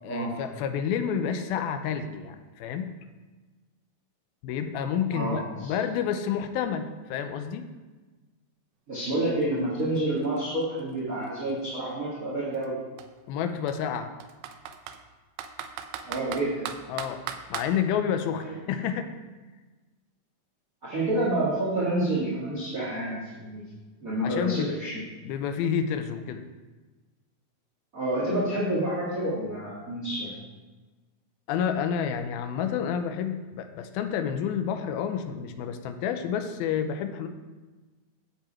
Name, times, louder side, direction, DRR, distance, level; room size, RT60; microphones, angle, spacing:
voice 1, 0.0-2.9 4.4-7.7 13.3-14.1 16.9-17.2 17.5-19.1 24.2-24.7 25.2-26.4 31.5-37.3, left 8 dB, 90° left, 7 dB, 2.6 m, -29 dB
voice 2, 5.1-5.7 8.9-12.7 16.0-16.7 20.8-23.6 24.0-25.0 27.9-30.3, right 1 dB, 30° right, -6 dB, 2.1 m, -28 dB
Computer keyboard, 9.4-9.5 9.8-11.8 12.5-12.7 13.0-13.1 13.7-15.0 15.4-17.7, right 8 dB, 85° right, 2.6 m, -37 dB
11.5 x 8.0 x 4.4 m, 1.3 s
omnidirectional pair, 4.2 m